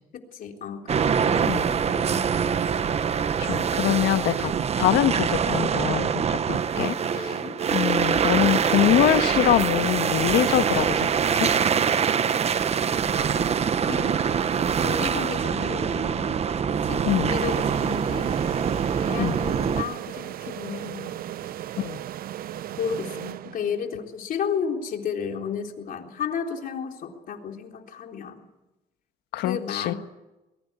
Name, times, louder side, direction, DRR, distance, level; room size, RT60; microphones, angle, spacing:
voice 1, 0.1-2.3 7.1-7.6 13.3-13.5 13.9-14.2 14.8-16.3 16.8-18.4 19.0-21.2 22.8-28.4 29.4-30.0, left 7 dB, 55° left, 3 dB, 3.7 m, -33 dB
sound 1, 0.9-19.8, right 7 dB, 40° right, 1.0 m, -24 dB
voice 2, 3.4-7.4 7.7-11.5 17.0-17.3 19.2-19.4 21.8-22.0 29.3-29.9, left 13 dB, 80° left, 10 dB, 1.5 m, -24 dB
sound 2, 17.3-24.0, right 12 dB, 60° right, 0.8 m, -36 dB
23.5 x 21.5 x 8.4 m, 1.0 s
cardioid pair, 110°, 17 cm